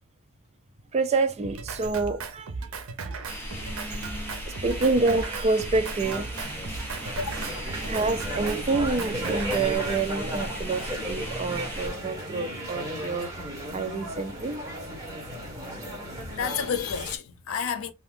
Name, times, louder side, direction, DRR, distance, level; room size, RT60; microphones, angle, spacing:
voice 1, 0.9-2.7 3.1-3.2 4.5-6.7 7.8-14.6, right 3 dB, 30° right, 0.4 m, -28 dB
Drum kit, 1.4-9.8, right 4 dB, 85° right, 0.5 m, -37 dB
sound 1, 3.3-11.9, equal, 10° left, 0.8 m, -37 dB
voice 2, 4.3-4.6 7.0-7.3 16.4-17.9, left 7 dB, 80° left, 0.5 m, -31 dB
sound 2, 6.0-17.2, equal, 15° right, 1.1 m, -35 dB
2.5 x 2.3 x 3.4 m
head